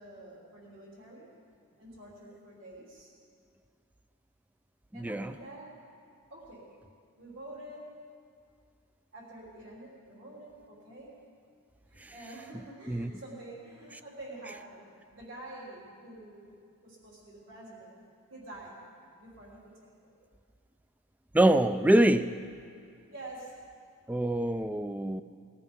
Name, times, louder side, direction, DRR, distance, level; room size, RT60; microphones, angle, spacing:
voice 1, 0.0-1.3 1.8-3.1 4.9-5.8 6.3-6.8 7.2-8.0 9.1-11.2 11.9-16.5 16.8-18.0 18.3-18.8 19.2-20.1 23.1-23.6, right 1 dB, 65° right, -4 dB, 3.3 m, -47 dB
voice 2, 4.9-5.3 12.0-12.1 12.9-13.1 21.3-22.4 24.1-25.2, right 1 dB, 5° right, 12 dB, 0.3 m, -25 dB
20.0 x 13.0 x 5.3 m, 2.3 s
head